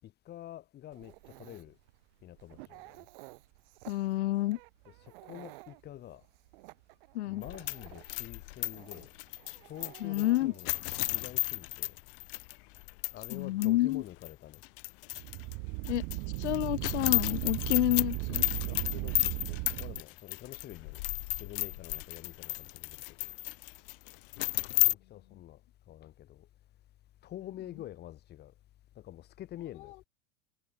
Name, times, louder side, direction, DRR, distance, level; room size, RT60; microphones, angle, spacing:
voice 1, 0.0-1.8 2.2-3.1 4.9-6.2 7.3-9.1 9.6-10.7 11.0-12.0 13.1-14.6 18.6-21.0 21.4-23.4 24.8-25.6 25.9-26.5 27.2-28.5 28.9-29.9, left 13 dB, 30° left, 6.5 m, -47 dB
Dog, 0.9-11.2, right 26 dB, 55° right, 3.7 m, -54 dB
voice 2, 3.9-4.6 7.1-7.4 10.0-10.5 13.3-14.0 15.9-16.0 16.4-18.5, left 16 dB, 80° left, 1.7 m, -29 dB
sound 1, 7.4-13.4 13.6-13.7 14.2-15.5 15.8-24.9, left 26 dB, 50° left, 0.9 m, -33 dB
sound 2, 15.1-20.0, right 39 dB, 40° right, 0.7 m, -36 dB
supercardioid pair, 160°, 34 cm